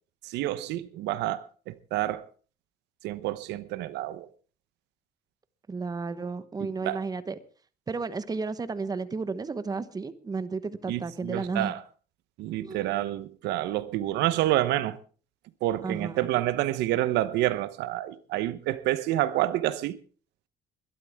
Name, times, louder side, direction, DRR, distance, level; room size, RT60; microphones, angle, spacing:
voice 1, 0.2-2.2 3.0-4.3 6.6-7.0 10.9-11.8 12.4-15.0 15.6-20.0, right 14 dB, 85° right, 1.0 m, -28 dB
voice 2, 5.7-7.4 7.9-11.7 12.6-12.8 15.8-16.3, right 4 dB, 20° right, 1.1 m, -33 dB
22.0 x 12.0 x 3.6 m
cardioid pair, 110°, 17 cm